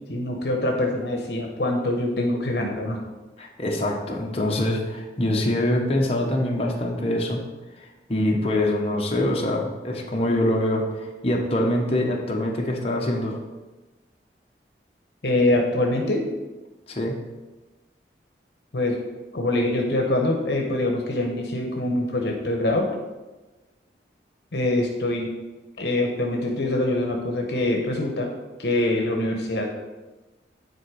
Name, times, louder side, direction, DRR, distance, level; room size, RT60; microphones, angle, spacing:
voice 1, 0.1-3.0 15.2-16.3 18.7-19.0 19.3-22.9 24.5-25.3 25.8-28.3 28.6-29.7, left 1 dB, 70° left, 1 dB, 1.0 m, -24 dB
voice 2, 3.4-7.4 7.8-13.4 16.9-17.1, left 1 dB, 35° left, 0 dB, 1.1 m, -24 dB
9.6 x 4.2 x 4.9 m, 1.2 s
head